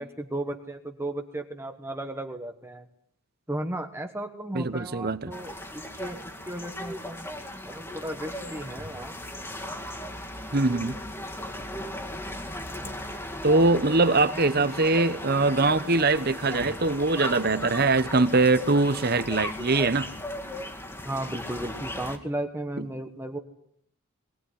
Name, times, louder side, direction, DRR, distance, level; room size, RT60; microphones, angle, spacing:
voice 1, 0.0-2.9 3.5-7.3 7.6-9.1 12.8-12.9 21.1-23.4, right 1 dB, 10° right, 1.2 m, -35 dB
voice 2, 4.5-5.3 10.5-11.0 13.4-20.1 22.8-22.9, right 3 dB, 45° right, 1.1 m, -22 dB
sound 1, 5.3-22.2, left 1 dB, 10° left, 2.1 m, -37 dB
22.0 x 17.5 x 9.9 m
head